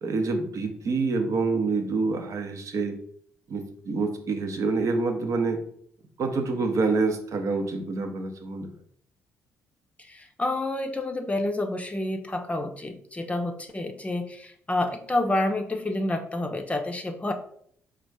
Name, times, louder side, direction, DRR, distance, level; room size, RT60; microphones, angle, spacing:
voice 1, 0.0-3.0 3.5-5.6 6.2-8.7, right 3 dB, 50° right, 6 dB, 0.8 m, -27 dB
voice 2, 10.0-17.3, left 2 dB, 20° left, 5 dB, 0.6 m, -29 dB
4.1 x 2.4 x 4.6 m, 0.63 s
figure-of-eight pair, 45°, 7 cm